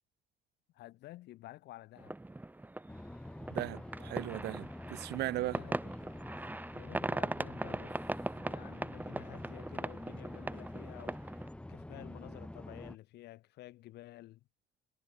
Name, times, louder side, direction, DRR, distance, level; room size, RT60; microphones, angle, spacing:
voice 1, 0.7-2.1 5.4-5.9 6.7-11.4 11.7-14.5, left 16 dB, 75° left, 4.4 m, -52 dB
sound 1, 2.0-11.5, right 2 dB, 10° right, 3.7 m, -40 dB
sound 2, 2.9-13.0, left 1 dB, 5° left, 1.6 m, -47 dB
voice 2, 3.5-5.6, right 16 dB, 80° right, 2.6 m, -37 dB
cardioid pair, 110°, 17 cm